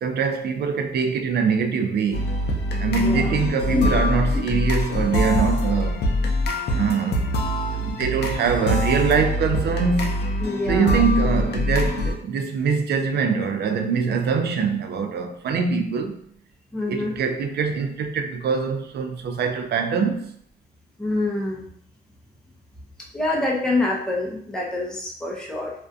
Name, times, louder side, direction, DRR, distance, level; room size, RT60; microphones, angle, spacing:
voice 1, 0.0-2.4 2.8-6.0 6.7-7.2 7.7-10.2 10.7-16.2 16.9-20.3, right 5 dB, 55° right, 0.4 m, -23 dB
sound 1, 2.1-12.1, left 1 dB, 55° left, 0.5 m, -24 dB
voice 2, 2.8-3.3 3.7-3.9 10.4-11.0 16.7-17.2 21.0-21.7 23.1-25.7, left 2 dB, 5° left, 0.5 m, -26 dB
2.5 x 2.2 x 2.5 m
cardioid pair, 90°, 20 cm